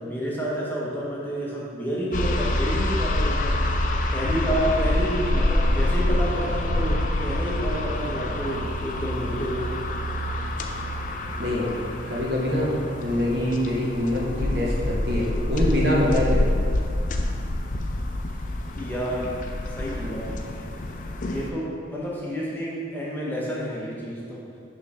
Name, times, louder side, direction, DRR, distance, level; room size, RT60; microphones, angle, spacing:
voice 1, 0.0-3.6 4.1-9.7 18.8-19.3 19.7-20.3 21.2-24.4, equal, 10° left, -6 dB, 0.8 m, -29 dB
sound 1, 2.1-21.5, left 1 dB, 45° left, 0.4 m, -26 dB
voice 2, 11.4-11.8 12.1-16.5, left 1 dB, 60° right, -4 dB, 1.2 m, -24 dB
6.3 x 3.2 x 5.4 m, 2.3 s
head